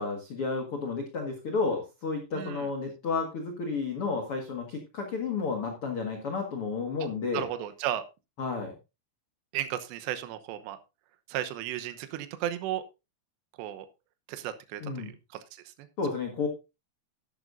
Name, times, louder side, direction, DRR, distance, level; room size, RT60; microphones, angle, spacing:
voice 1, 0.0-7.5 8.4-8.7 14.8-15.1 16.0-16.5, left 4 dB, 60° left, 2 dB, 1.4 m, -32 dB
voice 2, 2.3-2.7 7.3-8.0 9.5-10.8 11.3-12.8 13.6-13.9 14.3-15.1 15.5-15.9, right 12 dB, 75° right, 10 dB, 3.0 m, -34 dB
12.5 x 11.0 x 2.6 m, 0.27 s
omnidirectional pair, 5.3 m